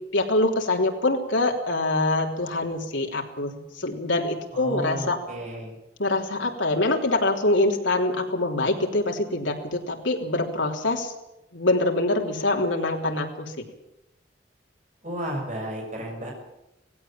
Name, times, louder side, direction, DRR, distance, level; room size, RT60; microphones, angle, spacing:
voice 1, 0.1-5.2 6.0-11.1 11.5-13.5, left 2 dB, 90° left, 1 dB, 3.4 m, -24 dB
voice 2, 4.5-5.8 15.0-16.3, right 1 dB, 40° right, 1 dB, 6.4 m, -33 dB
18.0 x 16.5 x 8.9 m, 0.90 s
head